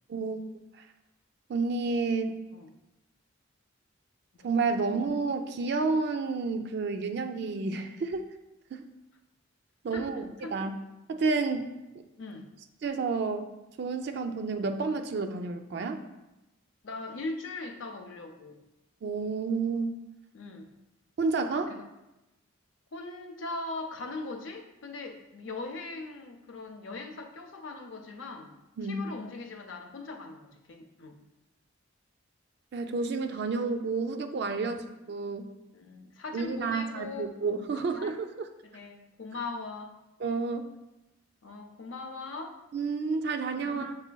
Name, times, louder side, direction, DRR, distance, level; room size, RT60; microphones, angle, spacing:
voice 1, 1.5-2.3 4.4-8.3 8.7-8.8 9.8-10.7 11.1-11.7 12.8-13.5 13.8-16.0 19.0-20.0 21.2-21.7 28.8-29.0 32.7-34.8 35.1-35.5 36.3-38.5 40.2-40.7 42.7-43.9, right 4 dB, 50° right, 7 dB, 0.3 m, -30 dB
voice 2, 9.9-10.6 12.2-12.5 16.8-18.6 20.3-20.7 21.6-21.9 22.9-31.2 34.6-34.8 35.7-37.3 37.7-38.1 38.6-40.0 41.4-42.6 43.6-43.9, left 3 dB, 65° left, 4 dB, 0.5 m, -40 dB
7.1 x 3.2 x 2.2 m, 0.98 s
head